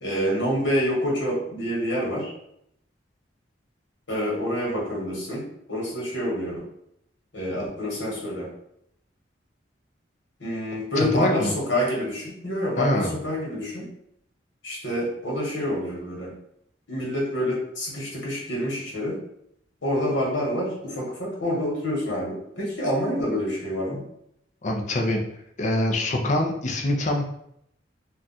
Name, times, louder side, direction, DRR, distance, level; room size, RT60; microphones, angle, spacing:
voice 1, 0.0-2.3 4.1-5.4 5.7-6.6 7.3-8.5 10.4-13.9 14.6-16.3 16.9-19.2 19.8-24.0, equal, 85° left, -3 dB, 1.3 m, -27 dB
voice 2, 11.0-11.5 12.8-13.1 24.6-25.2 25.6-27.2, left 1 dB, 40° left, 2 dB, 0.5 m, -24 dB
2.4 x 2.3 x 4.0 m, 0.74 s
head